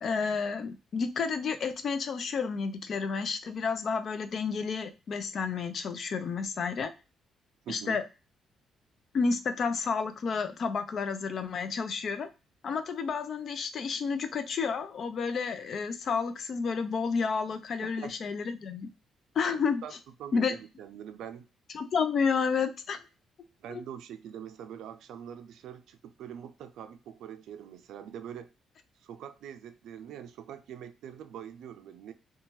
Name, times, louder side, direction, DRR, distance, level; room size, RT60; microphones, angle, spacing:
voice 1, 0.0-6.9 7.7-8.0 9.1-12.3 12.6-18.9 19.4-19.8 20.3-20.5 21.7-23.0 23.7-23.8, left 5 dB, 55° left, 0.4 m, -30 dB
voice 2, 7.6-8.0 17.8-18.1 19.8-19.9 20.2-21.5 23.6-28.5 29.0-32.1, right 9 dB, 80° right, 0.4 m, -43 dB
2.7 x 2.2 x 3.0 m
cardioid pair, 90°, 0 cm